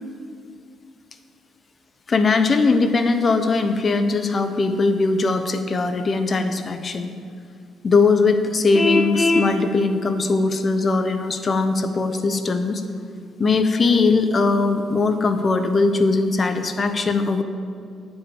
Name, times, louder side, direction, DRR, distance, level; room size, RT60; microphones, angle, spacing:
voice 1, 2.1-7.1 7.8-12.8 13.4-17.4, left 3 dB, 40° left, 8 dB, 0.8 m, -20 dB
Vehicle horn car horn honking, 8.7-9.5, left 2 dB, 25° left, 1.1 m, -20 dB
14.5 x 5.5 x 7.2 m, 2.3 s
cardioid pair, 90°, 0 cm